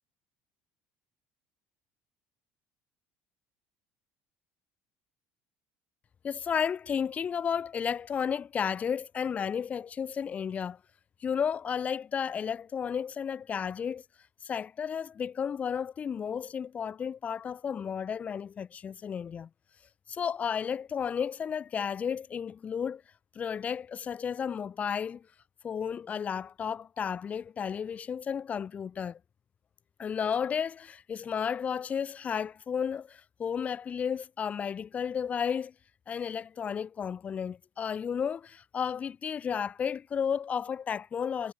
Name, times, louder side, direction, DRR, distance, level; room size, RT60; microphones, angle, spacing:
voice 1, 6.2-10.8 11.2-14.0 14.4-19.5 20.1-23.0 23.3-25.2 25.6-29.2 30.0-35.7 36.1-41.5, left 7 dB, 30° left, 4.5 m, -33 dB
cardioid pair, 150°, 5 cm